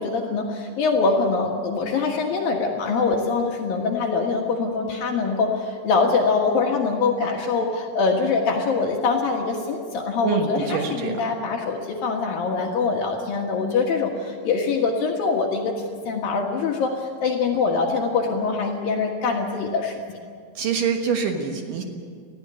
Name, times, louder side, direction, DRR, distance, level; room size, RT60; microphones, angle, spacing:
voice 1, 0.0-15.8 16.0-20.0, left 4 dB, 65° left, 0 dB, 2.4 m, -23 dB
voice 2, 10.2-11.2 20.6-21.8, right 6 dB, 70° right, 3 dB, 2.1 m, -25 dB
19.5 x 14.5 x 10.0 m, 2.1 s
omnidirectional pair, 6.0 m